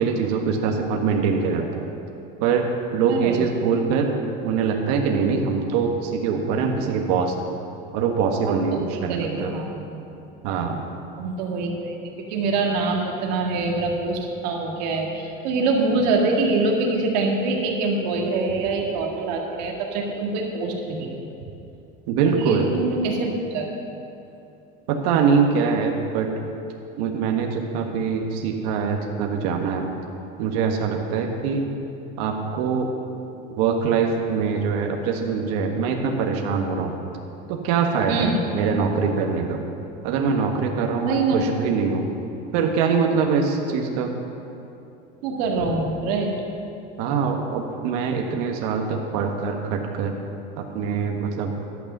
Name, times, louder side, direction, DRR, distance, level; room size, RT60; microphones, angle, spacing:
voice 1, 0.0-1.9 2.4-4.1 4.4-7.3 7.9-9.6 10.4-10.9 22.1-22.7 24.9-26.4 27.0-29.9 30.4-31.7 32.2-32.9 33.6-36.9 37.5-39.6 40.0-42.1 42.5-44.1 47.0-50.1 50.6-51.5, right 5 dB, 70° right, 2 dB, 1.4 m, -23 dB
voice 2, 3.1-3.4 8.5-9.7 11.2-12.0 12.3-21.2 22.2-23.7 38.1-38.4 41.0-41.4 45.2-46.3, right 3 dB, 90° right, 0 dB, 2.0 m, -24 dB
12.0 x 8.5 x 6.7 m, 2.8 s
cardioid pair, 170°, 21 cm